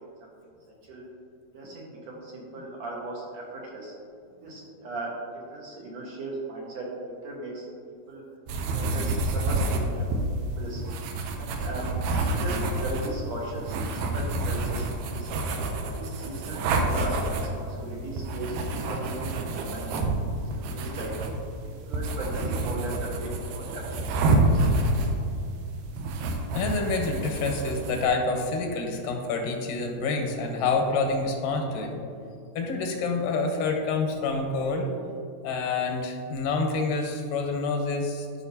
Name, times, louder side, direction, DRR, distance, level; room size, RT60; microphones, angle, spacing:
voice 1, 0.7-1.0 1.5-3.9 4.4-7.7 8.1-8.2 8.7-10.8 11.4-11.9 12.2-15.4 15.9-21.1 21.6-24.7, right 2 dB, 65° right, -3 dB, 2.0 m, -37 dB
sound 1, 8.5-28.1, right 2 dB, 85° right, 2.3 m, -28 dB
voice 2, 26.5-32.1 32.6-34.9 35.4-38.3, left 3 dB, 80° left, 3 dB, 2.5 m, -27 dB
12.5 x 5.4 x 2.7 m, 2.4 s
omnidirectional pair, 3.8 m